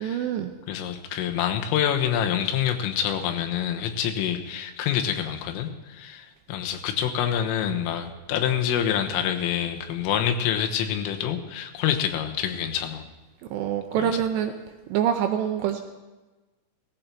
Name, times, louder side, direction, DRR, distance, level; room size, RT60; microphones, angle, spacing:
voice 1, 0.0-0.5 13.5-14.5 14.9-15.8, right 9 dB, 80° right, 5 dB, 2.5 m, -25 dB
voice 2, 0.7-13.0 14.0-14.2, left 9 dB, 90° left, 5 dB, 3.8 m, -27 dB
18.0 x 15.0 x 4.5 m, 1.2 s
omnidirectional pair, 5.7 m